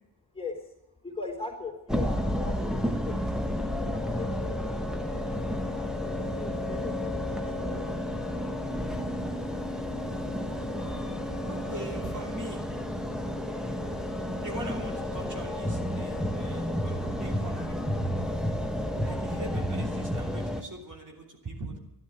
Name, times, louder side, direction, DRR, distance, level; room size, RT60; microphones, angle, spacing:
voice 1, 0.3-0.7 1.0-3.3 3.8-4.6 5.7-9.0 9.9-10.3 10.6-10.7, left 4 dB, 15° left, -1 dB, 3.8 m, -41 dB
sound 1, 1.9-20.6, left 1 dB, ahead, 1.4 m, -31 dB
voice 2, 11.5-12.6 14.4-18.0 19.0-21.8, right 1 dB, 50° right, 0 dB, 3.2 m, -41 dB
13.0 x 11.5 x 7.9 m, 0.92 s
wide cardioid pair, 120°, 40 cm